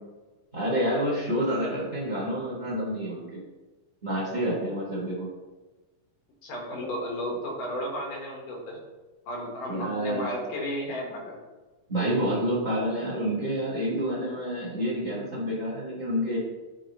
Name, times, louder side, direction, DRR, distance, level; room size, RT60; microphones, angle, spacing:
voice 1, 0.5-3.4 4.0-5.3 9.7-10.3 11.9-16.4, equal, 40° right, -6 dB, 0.6 m, -28 dB
voice 2, 6.4-8.8 9.3-11.4, equal, 75° left, -1 dB, 2.8 m, -33 dB
9.6 x 4.0 x 3.0 m, 1.2 s
omnidirectional pair, 3.8 m